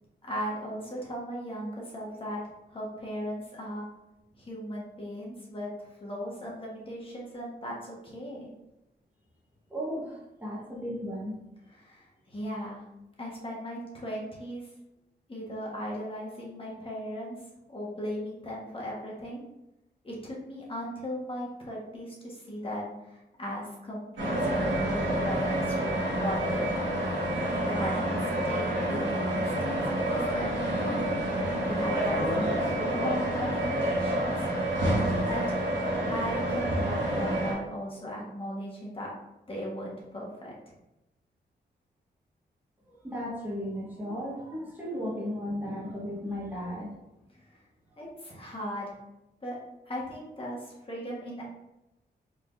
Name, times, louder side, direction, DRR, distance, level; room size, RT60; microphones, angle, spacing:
voice 1, 0.2-2.4 2.7-3.9 4.4-8.5 11.8-12.8 13.2-14.7 15.3-17.4 17.7-19.4 20.0-26.9 27.6-31.0 31.6-34.4 35.3-35.5 36.1-39.1 39.5-40.7 48.0-49.0 49.4-49.6 49.9-51.4, equal, 30° left, -4 dB, 1.4 m, -37 dB
voice 2, 9.7-11.4 42.8-47.0 47.9-48.0, equal, 10° right, -6 dB, 1.3 m, -35 dB
sound 1, 24.2-37.5, right 1 dB, 80° right, 1.4 m, -28 dB
4.5 x 3.6 x 2.6 m, 0.93 s
cardioid pair, 85°, 18 cm